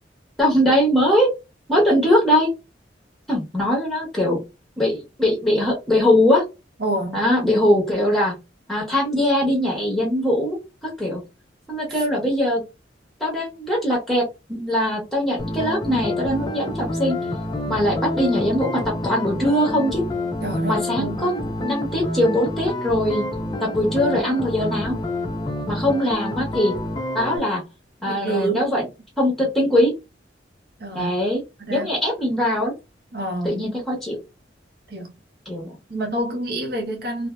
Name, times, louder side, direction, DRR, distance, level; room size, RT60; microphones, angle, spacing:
voice 1, 0.4-1.3 1.7-2.5 3.3-4.4 4.8-6.4 7.1-8.3 8.7-10.6 10.8-11.2 11.7-12.6 13.2-17.2 17.7-20.0 20.6-23.3 23.6-25.0 25.7-26.7 27.1-27.6 28.0-28.8 29.2-29.9 30.9-31.4 31.7-32.7 33.4-34.2 35.5-35.7, left 1 dB, ahead, 0.9 m, -21 dB
voice 2, 6.8-7.2 11.9-12.0 20.4-21.3 28.1-28.9 30.8-31.1 31.6-31.9 33.1-33.6 34.9-35.1 35.9-37.3, right 2 dB, 55° right, 0.9 m, -28 dB
sound 1, 15.4-27.4, left 1 dB, 20° left, 0.5 m, -28 dB
2.6 x 2.6 x 2.2 m
head